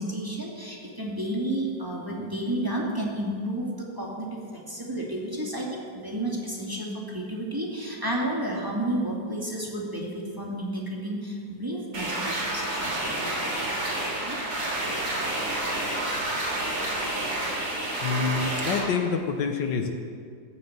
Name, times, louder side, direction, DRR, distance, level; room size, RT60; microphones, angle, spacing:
voice 1, 0.0-14.4, right 1 dB, 10° right, -3 dB, 2.3 m, -32 dB
sound 1, 11.9-18.8, right 1 dB, 75° right, 4.0 m, -29 dB
voice 2, 18.0-19.9, left 5 dB, 70° left, 5 dB, 1.6 m, -27 dB
14.5 x 8.7 x 8.0 m, 2.1 s
omnidirectional pair, 2.0 m